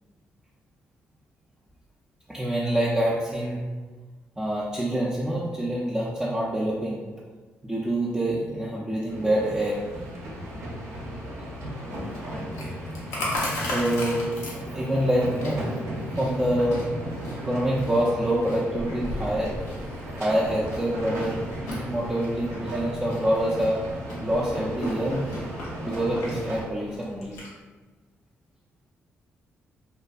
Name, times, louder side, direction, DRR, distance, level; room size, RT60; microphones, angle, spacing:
voice 1, 2.3-3.6 4.4-7.0 7.6-9.8 11.5-11.7 13.6-14.3 14.7-15.7 16.0-16.8 17.4-19.5 20.2-21.4 21.7-23.8 24.2-25.2 25.8-27.4, right 1 dB, 15° right, -6 dB, 0.5 m, -26 dB
sound 1, 9.1-26.6, equal, 65° right, 0.6 m, -35 dB
Chewing mastication, 11.9-27.5, left 1 dB, 90° left, 0.6 m, -37 dB
2.5 x 2.4 x 2.3 m, 1.3 s
supercardioid pair, 60°, 5 cm